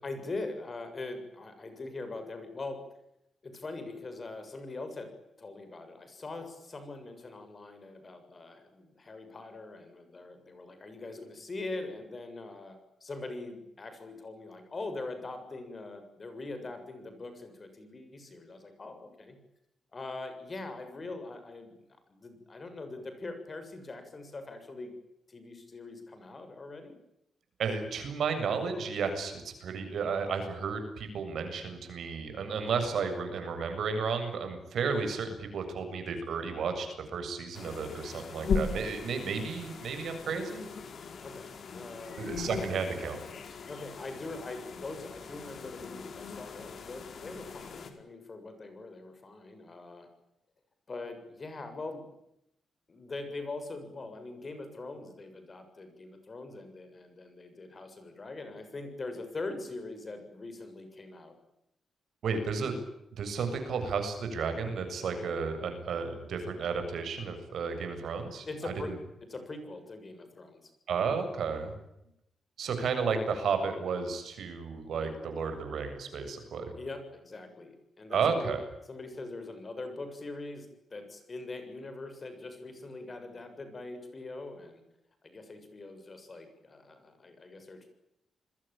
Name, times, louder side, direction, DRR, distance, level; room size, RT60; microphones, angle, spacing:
voice 1, 0.0-2.8 3.4-5.1 5.4-19.4 19.9-21.8 22.1-24.9 25.3-26.9 41.2-42.5 43.7-50.1 50.9-52.0 52.9-61.4 68.5-68.9 69.3-70.7 76.8-78.5 78.9-84.8 85.2-88.0, left 2 dB, 25° left, 8 dB, 7.1 m, -42 dB
voice 2, 27.6-40.7 42.2-43.2 62.2-62.8 63.1-68.9 70.9-71.7 72.6-76.6 78.1-78.6, right 5 dB, 65° right, 7 dB, 7.6 m, -33 dB
sound 1, 37.5-47.9, left 5 dB, 50° left, 4.6 m, -38 dB
29.0 x 21.5 x 9.0 m, 0.82 s
wide cardioid pair, 165°, 0 cm